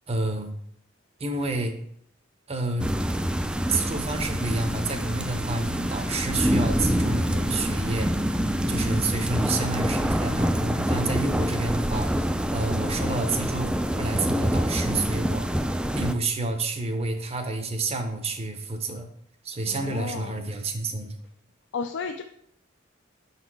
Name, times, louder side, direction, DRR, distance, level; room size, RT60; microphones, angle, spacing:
voice 1, 0.1-0.5 1.2-1.8 2.5-2.9 3.7-8.1 8.6-15.5 15.9-19.1 19.4-21.2, right 3 dB, 30° right, 6 dB, 0.6 m, -29 dB
sound 1, 2.8-16.1, equal, 5° right, 0.3 m, -26 dB
sound 2, 4.1-11.0, equal, 65° right, 0.9 m, -40 dB
voice 2, 19.7-20.5 21.7-22.2, left 5 dB, 65° left, 6 dB, 0.4 m, -33 dB
6.3 x 4.1 x 4.6 m, 0.70 s
head